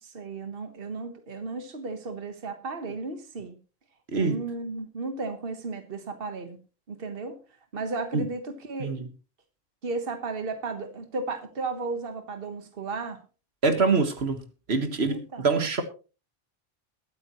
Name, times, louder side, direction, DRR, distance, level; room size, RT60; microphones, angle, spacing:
voice 1, 0.0-3.6 4.1-6.6 6.9-7.4 7.7-8.9 9.8-13.2 15.1-15.5, right 3 dB, 65° right, 1.5 m, -34 dB
voice 2, 4.1-4.4 8.1-8.2 8.8-9.1 13.6-14.4 14.7-15.8, right 4 dB, 85° right, 1.8 m, -25 dB
22.0 x 8.8 x 3.0 m
omnidirectional pair, 1.1 m